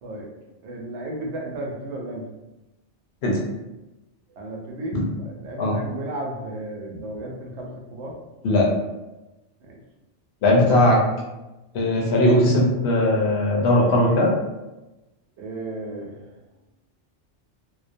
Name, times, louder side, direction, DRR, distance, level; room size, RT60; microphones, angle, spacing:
voice 1, 0.6-2.3 4.4-8.1 9.6-9.8 15.4-16.1, right 1 dB, 75° right, 0 dB, 0.9 m, -34 dB
voice 2, 10.4-11.0 11.7-14.3, left 1 dB, 70° left, -2 dB, 0.8 m, -19 dB
2.4 x 2.1 x 2.5 m, 1.0 s
omnidirectional pair, 1.2 m